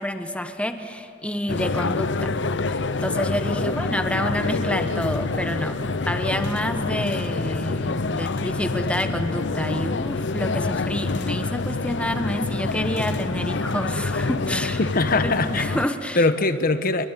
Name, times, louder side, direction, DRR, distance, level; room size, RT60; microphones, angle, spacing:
voice 1, 0.0-2.3 2.6-14.8 15.2-16.2, left 1 dB, 5° left, 7 dB, 1.2 m, -28 dB
sound 1, 1.5-15.9, left 3 dB, 70° left, 0.7 m, -26 dB
voice 2, 14.8-15.7 16.1-17.1, left 2 dB, 50° left, 9 dB, 1.2 m, -22 dB
29.0 x 22.5 x 9.1 m, 2.6 s
head